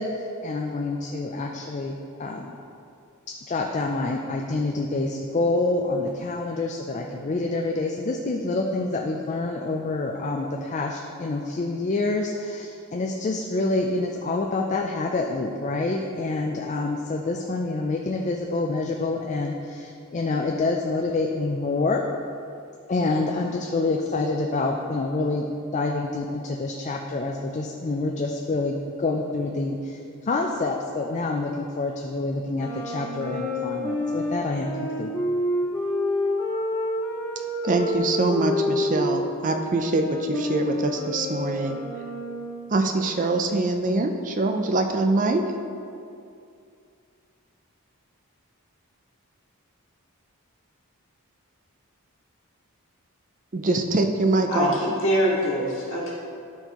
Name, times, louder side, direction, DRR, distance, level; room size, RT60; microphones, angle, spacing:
voice 1, 0.0-2.5 3.5-22.0 22.9-25.4 25.7-35.1, left 3 dB, 30° left, 1 dB, 0.4 m, -27 dB
sound 1, 32.5-39.3 39.7-42.7, left 1 dB, 10° left, 1.8 m, -28 dB
voice 2, 37.6-41.8 42.7-45.4 53.5-54.8, right 2 dB, 35° right, 5 dB, 0.4 m, -24 dB
voice 3, 54.5-56.1, equal, 60° left, -6 dB, 1.8 m, -24 dB
12.5 x 4.6 x 3.0 m, 2.5 s
head